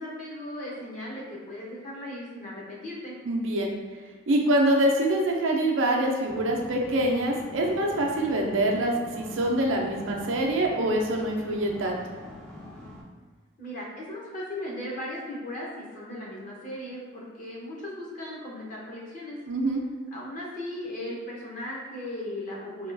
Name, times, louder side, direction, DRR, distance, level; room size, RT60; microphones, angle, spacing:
voice 1, 0.0-3.2 13.6-19.4 20.1-22.9, left 1 dB, 40° left, -4 dB, 0.7 m, -37 dB
voice 2, 3.2-3.7 4.3-12.0 19.5-19.8, right 1 dB, 75° right, 0 dB, 0.5 m, -25 dB
sound 1, 6.3-13.0, left 1 dB, 5° left, 0.4 m, -44 dB
3.5 x 2.3 x 2.5 m, 1.6 s
head